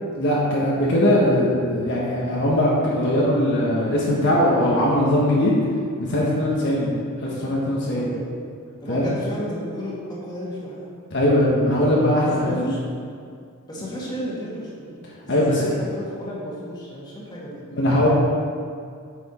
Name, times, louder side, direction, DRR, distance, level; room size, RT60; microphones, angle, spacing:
voice 1, 0.2-5.5 6.0-6.9 7.3-8.1 8.9-9.1 11.1-12.7 15.3-15.7 17.8-18.1, left 1 dB, 55° left, -5 dB, 1.4 m, -20 dB
voice 2, 7.6-8.3 8.8-10.9 12.4-12.8 13.7-14.9 15.2-17.6, equal, 20° left, -7 dB, 2.0 m, -33 dB
9.4 x 6.1 x 4.4 m, 2.2 s
head